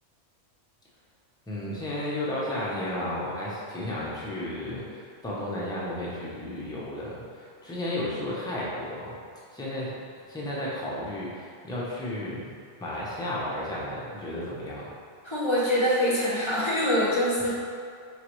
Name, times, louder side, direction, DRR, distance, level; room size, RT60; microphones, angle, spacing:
voice 1, 1.5-9.2 9.5-9.9 10.3-12.4 12.8-14.8, left 1 dB, 5° left, -6 dB, 0.5 m, -33 dB
voice 2, 15.2-17.5, equal, 25° left, -8 dB, 0.8 m, -24 dB
4.9 x 3.0 x 3.0 m, 2.2 s
omnidirectional pair, 1.2 m